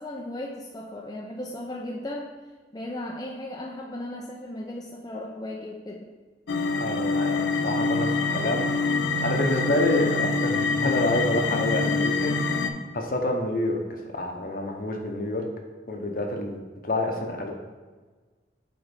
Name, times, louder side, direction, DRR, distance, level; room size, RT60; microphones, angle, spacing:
voice 1, 0.0-2.3 2.7-6.1, left 1 dB, 20° left, -1 dB, 0.4 m, -36 dB
sound 1, 6.5-12.7, left 3 dB, 80° left, 0.5 m, -25 dB
voice 2, 6.8-8.7 9.2-12.3 12.9-13.8 14.1-15.4 15.9-16.6 16.8-17.5, left 1 dB, 50° left, 3 dB, 0.8 m, -27 dB
8.1 x 3.8 x 3.4 m, 1.4 s
head